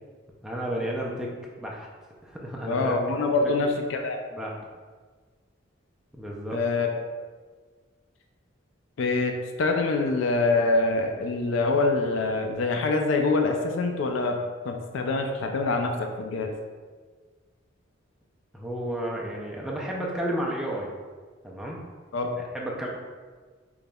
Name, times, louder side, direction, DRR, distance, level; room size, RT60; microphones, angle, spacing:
voice 1, 0.4-1.3 1.6-1.9 2.2-2.9 3.2-3.7 4.3-4.6 6.1-6.6 18.5-20.9 21.4-21.8 22.4-22.9, right 1 dB, 5° right, -3 dB, 0.4 m, -32 dB
voice 2, 2.7-4.2 6.5-7.0 9.0-14.4 14.6-16.5 22.1-22.4, left 3 dB, 65° left, 4 dB, 0.4 m, -25 dB
5.2 x 3.0 x 2.2 m, 1.5 s
head